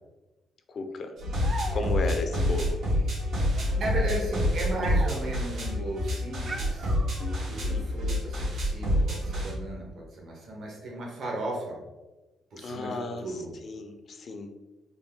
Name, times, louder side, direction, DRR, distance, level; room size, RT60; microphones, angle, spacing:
voice 1, 0.7-1.1 1.7-2.8 7.2-7.9 12.6-14.5, left 3 dB, 50° left, 6 dB, 0.5 m, -35 dB
sound 1, 1.2-9.5, left 1 dB, 80° right, 1.5 m, -27 dB
sound 2, 1.4-2.2 3.4-5.4 6.5-7.6, right 2 dB, 40° right, 0.6 m, -40 dB
voice 2, 1.8-2.1 3.4-3.5 3.8-7.0 7.4-11.8 12.5-13.5, right 1 dB, 60° right, -3 dB, 1.1 m, -36 dB
3.9 x 2.2 x 3.6 m, 1.1 s
cardioid pair, 90°, 0 cm